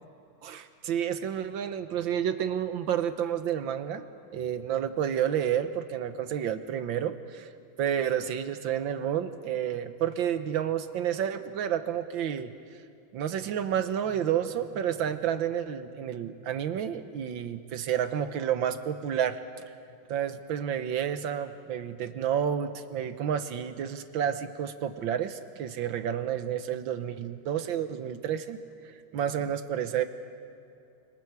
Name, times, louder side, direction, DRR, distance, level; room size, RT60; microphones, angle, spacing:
voice 1, 0.4-4.1 4.3-7.5 7.8-12.5 13.1-19.4 20.1-28.6 28.8-30.0, right 9 dB, 70° right, 10 dB, 1.6 m, -30 dB
29.5 x 25.0 x 4.7 m, 2.5 s
omnidirectional pair, 2.3 m